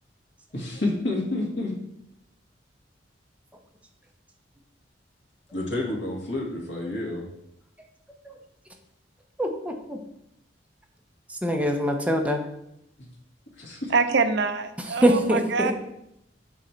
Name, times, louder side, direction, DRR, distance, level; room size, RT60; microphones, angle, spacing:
voice 1, 0.5-1.7 5.5-7.3 13.0-13.1 13.6-13.9, left 2 dB, 85° left, -1 dB, 1.9 m, -29 dB
voice 2, 9.4-10.0 11.4-12.4 15.0-15.7, equal, 10° right, 2 dB, 0.8 m, -23 dB
voice 3, 13.9-15.7, right 4 dB, 70° right, 9 dB, 0.6 m, -25 dB
7.3 x 4.2 x 4.5 m, 0.79 s
head